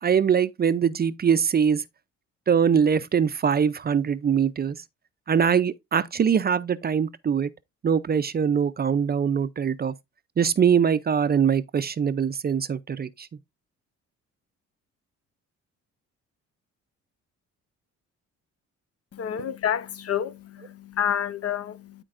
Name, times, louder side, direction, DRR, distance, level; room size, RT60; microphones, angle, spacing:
voice 1, 0.0-1.8 2.5-4.8 5.3-7.5 7.8-9.9 10.4-13.3, right 7 dB, 30° right, 0.5 m, -22 dB
voice 2, 19.1-22.0, left 9 dB, 50° left, 0.8 m, -29 dB
12.5 x 4.4 x 2.5 m
cardioid pair, 90°, 30 cm